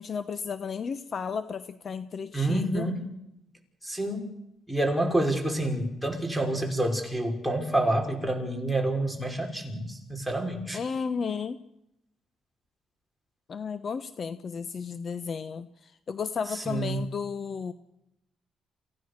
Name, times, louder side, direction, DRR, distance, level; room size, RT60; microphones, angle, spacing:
voice 1, 0.0-2.9 10.7-11.6 13.5-17.7, left 6 dB, 50° left, 13 dB, 1.0 m, -33 dB
voice 2, 2.3-3.1 3.8-4.3 4.7-10.8 16.5-17.0, right 1 dB, ahead, 5 dB, 5.6 m, -28 dB
28.5 x 16.5 x 6.7 m, 0.84 s
cardioid pair, 90°, 0 cm